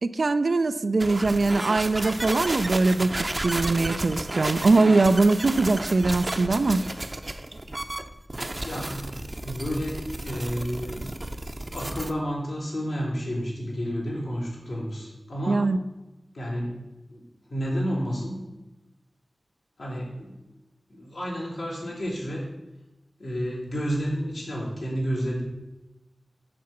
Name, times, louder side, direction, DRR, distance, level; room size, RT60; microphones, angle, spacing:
voice 1, 0.0-3.1 3.4-6.8 15.5-15.8, right 3 dB, 70° right, 9 dB, 0.4 m, -22 dB
sound 1, 1.0-12.1, right 1 dB, 35° right, 0.7 m, -32 dB
voice 2, 8.6-9.1 9.4-11.1 11.7-15.6 16.3-16.7 17.1-17.2 17.5-18.5 19.8-20.4 20.9-22.5 23.2-25.4, equal, 80° left, -5 dB, 3.5 m, -30 dB
7.5 x 7.0 x 5.9 m, 1.0 s
wide cardioid pair, 50°, 0 cm